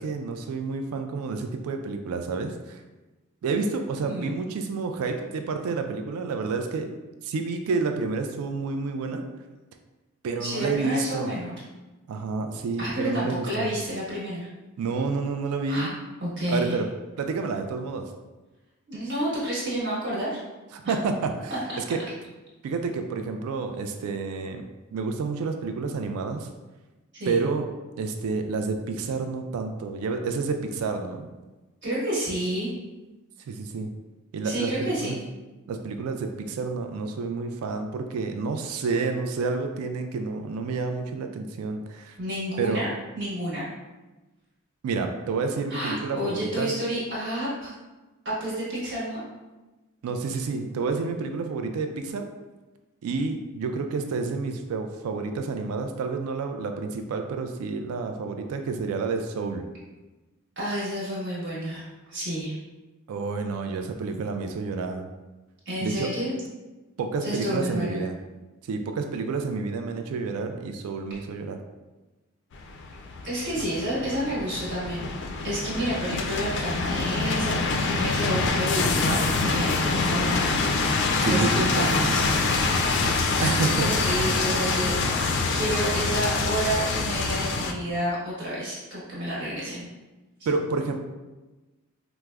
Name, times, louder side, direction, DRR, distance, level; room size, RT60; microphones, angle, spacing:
voice 1, 0.0-2.8 3.4-6.9 7.2-9.2 10.2-11.4 12.1-13.7 14.8-15.9 16.5-16.9 17.2-18.0 20.7-22.0 22.6-24.6 24.9-26.5 27.3-27.7 28.0-31.3 33.5-33.9 34.3-35.2 35.7-42.2 42.6-42.9 44.8-46.7 50.0-52.3 53.0-59.6 63.1-65.1 65.8-66.1 67.0-68.1 68.7-71.6 81.2-81.9 83.4-83.9 90.5-91.0, right 4 dB, 75° right, 6 dB, 0.3 m, -29 dB
voice 2, 10.4-11.5 12.8-14.5 15.7-15.9 16.2-16.8 18.9-20.4 21.7-21.8 27.1-27.4 31.8-32.7 34.4-35.2 42.2-42.9 43.1-43.7 45.7-47.7 48.2-49.2 60.6-62.5 65.6-66.3 67.2-68.0 73.2-75.1 75.4-80.4 81.2-83.3 83.6-89.9, right 1 dB, 50° right, -8 dB, 1.2 m, -30 dB
sound 1, 72.5-87.7, left 3 dB, 50° left, 0.3 m, -25 dB
4.7 x 2.0 x 2.2 m, 1.1 s
head